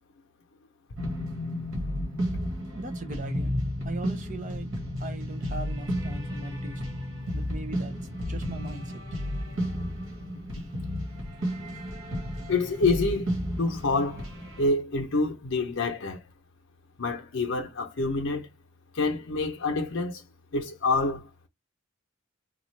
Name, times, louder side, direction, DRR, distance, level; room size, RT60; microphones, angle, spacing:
sound 1, 1.0-14.7, equal, 80° right, 1.6 m, -32 dB
voice 1, 2.7-3.5 3.8-4.7 5.0-7.0 7.3-8.0 8.3-9.0, right 2 dB, 40° right, 0.6 m, -39 dB
voice 2, 12.5-13.3 13.6-14.3 14.6-16.2 17.0-18.5 18.9-20.2 20.5-21.3, left 3 dB, 75° left, 0.7 m, -27 dB
3.8 x 2.4 x 3.2 m
head